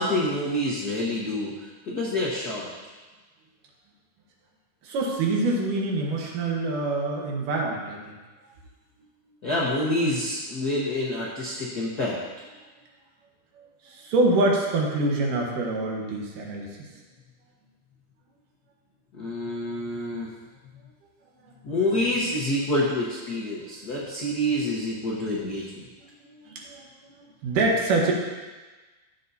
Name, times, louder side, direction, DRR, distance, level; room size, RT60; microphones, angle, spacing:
voice 1, 0.0-1.5 1.9-2.7 9.4-12.2 19.1-20.3 21.6-25.8, left 1 dB, 70° left, -5 dB, 0.9 m, -27 dB
voice 2, 4.8-8.2 13.9-16.9 26.2-26.9 27.2-28.1, right 2 dB, 75° right, -1 dB, 2.9 m, -25 dB
13.5 x 7.2 x 2.8 m, 1.3 s
omnidirectional pair, 3.7 m